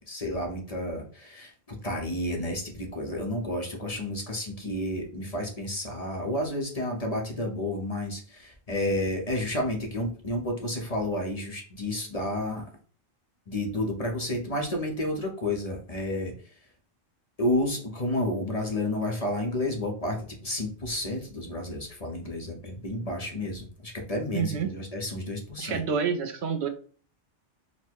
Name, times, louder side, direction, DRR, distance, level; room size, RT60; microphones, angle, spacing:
voice 1, 0.0-12.7 13.5-16.5 17.4-25.8, left 1 dB, 35° left, 0 dB, 0.9 m, -31 dB
voice 2, 24.3-24.7 25.6-26.7, right 6 dB, 75° right, 7 dB, 0.9 m, -28 dB
4.2 x 2.1 x 4.5 m, 0.42 s
omnidirectional pair, 1.2 m